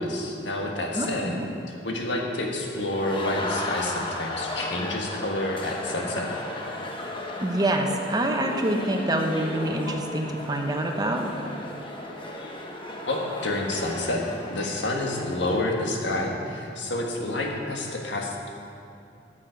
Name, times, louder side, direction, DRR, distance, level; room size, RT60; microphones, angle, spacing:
voice 1, 0.0-1.3 1.7-6.3 13.1-14.2 14.5-18.5, left 2 dB, 90° left, 0 dB, 1.6 m, -29 dB
voice 2, 0.9-1.5 7.4-11.3, right 1 dB, 20° right, 3 dB, 0.9 m, -26 dB
sound 1, 2.8-15.6, left 1 dB, 30° left, 1.1 m, -35 dB
14.0 x 7.5 x 5.1 m, 2.6 s
head